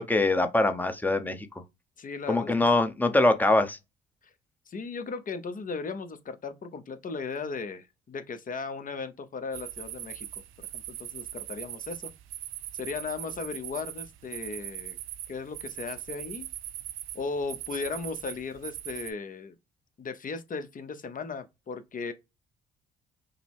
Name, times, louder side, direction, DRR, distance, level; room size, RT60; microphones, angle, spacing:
voice 1, 0.0-1.5 2.3-3.8, left 2 dB, 10° left, 0.8 m, -23 dB
voice 2, 2.0-2.8 4.7-10.3 10.7-12.1 12.7-15.0 15.3-16.5 17.1-19.5 20.0-22.1, left 4 dB, 40° left, 0.9 m, -36 dB
sound 1, 9.5-19.1, right 13 dB, 75° right, 0.5 m, -40 dB
5.8 x 2.1 x 3.4 m
supercardioid pair, 65°, 21 cm